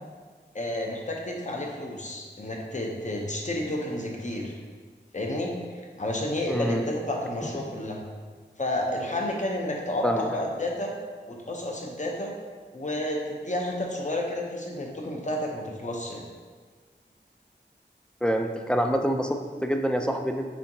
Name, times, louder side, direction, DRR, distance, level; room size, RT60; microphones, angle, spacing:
voice 1, 0.5-4.6 5.1-5.5 6.0-8.0 8.6-10.9 11.3-12.3 12.7-16.2, left 1 dB, 40° left, 0 dB, 0.7 m, -31 dB
voice 2, 6.5-6.8 10.0-10.3 18.2-20.4, equal, 5° left, 4 dB, 0.3 m, -26 dB
4.3 x 3.6 x 2.7 m, 1.5 s
wide cardioid pair, 45°, 19 cm